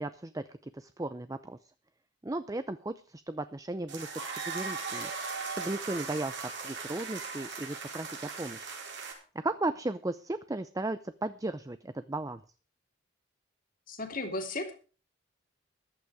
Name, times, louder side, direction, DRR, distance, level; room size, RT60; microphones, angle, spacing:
voice 1, 0.0-1.6 2.2-5.1 5.5-6.3 6.6-8.7 9.3-12.4, right 2 dB, 20° right, 12 dB, 0.5 m, -36 dB
sound 1, 3.9-9.1, right 4 dB, 65° right, 4.6 m, -38 dB
voice 2, 13.9-14.8, left 2 dB, 45° left, 5 dB, 2.7 m, -35 dB
14.5 x 11.5 x 4.8 m, 0.37 s
head